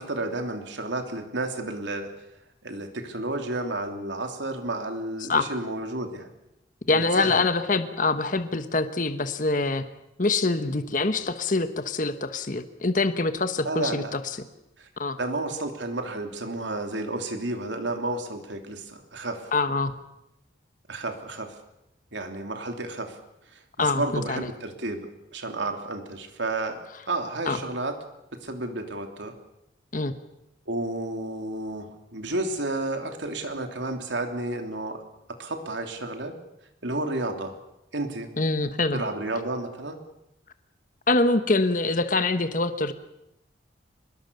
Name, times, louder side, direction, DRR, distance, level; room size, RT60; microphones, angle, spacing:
voice 1, 0.0-2.1 2.6-6.3 6.9-7.4 13.6-14.1 14.8-14.9 15.2-19.5 20.9-21.5 22.1-23.2 23.5-26.8 27.1-28.0 28.3-29.4 30.7-35.0 35.4-36.4 36.8-37.5 37.9-38.3 38.9-40.0, right 2 dB, 80° right, 5 dB, 3.1 m, -31 dB
voice 2, 6.9-9.8 10.2-14.5 15.0-15.2 19.5-20.0 23.8-24.5 27.5-27.6 29.9-30.1 38.4-39.0 41.1-42.9, left 3 dB, 45° left, 9 dB, 1.2 m, -25 dB
24.5 x 21.5 x 6.9 m, 0.86 s
head